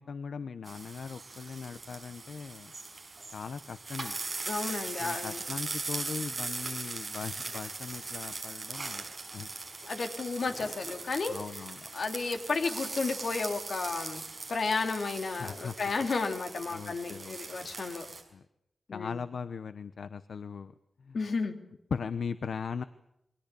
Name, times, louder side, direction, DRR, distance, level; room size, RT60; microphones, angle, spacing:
voice 1, 0.0-2.7 3.3-4.2 5.0-9.1 9.3-9.5 10.5-10.6 11.3-11.9 15.4-15.7 16.7-17.7 18.3-18.4 18.9-20.7 21.0-21.2 21.9-22.8, left 5 dB, 85° left, 11 dB, 0.9 m, -39 dB
sound 1, 0.6-18.2, right 3 dB, 30° right, 5.5 m, -40 dB
sound 2, 4.4-11.2, equal, 15° left, 7.3 m, -57 dB
voice 2, 4.5-5.4 9.8-11.3 11.9-14.2 14.5-18.1 18.9-19.2 21.1-21.6, left 4 dB, 65° left, 5 dB, 3.0 m, -32 dB
28.0 x 23.5 x 6.9 m, 0.83 s
wide cardioid pair, 170°, 0 cm